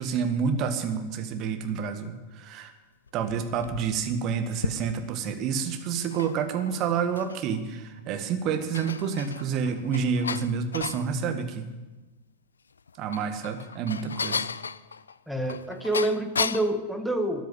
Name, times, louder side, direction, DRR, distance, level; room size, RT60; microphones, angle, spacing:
voice 1, 0.0-2.7 3.1-11.7 13.0-14.5, right 6 dB, 35° right, 7 dB, 1.7 m, -29 dB
sound 1, 3.1-5.2 5.9-7.6 8.0-8.1 8.5-11.1 12.8-16.8, left 5 dB, 75° left, 0.4 m, -34 dB
voice 2, 15.3-17.5, right 1 dB, ahead, 5 dB, 1.6 m, -27 dB
13.5 x 10.0 x 9.0 m, 1.1 s
figure-of-eight pair, 90°, 0 cm